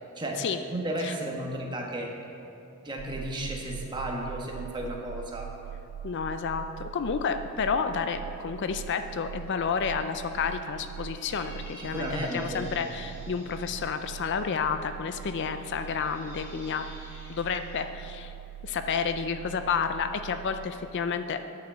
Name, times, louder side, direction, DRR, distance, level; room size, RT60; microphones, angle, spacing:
voice 1, 0.2-2.1 2.8-5.5 11.8-12.6, right 1 dB, 20° right, -1 dB, 1.2 m, -33 dB
sound 1, 3.0-20.7, right 10 dB, 70° right, 0.3 m, -42 dB
voice 2, 6.0-16.9 17.3-18.3 18.6-21.4, left 6 dB, 50° left, 9 dB, 0.4 m, -30 dB
Squeak, 10.9-14.0 14.8-17.9, equal, 10° left, 2.4 m, -51 dB
9.6 x 6.6 x 6.7 m, 2.6 s
head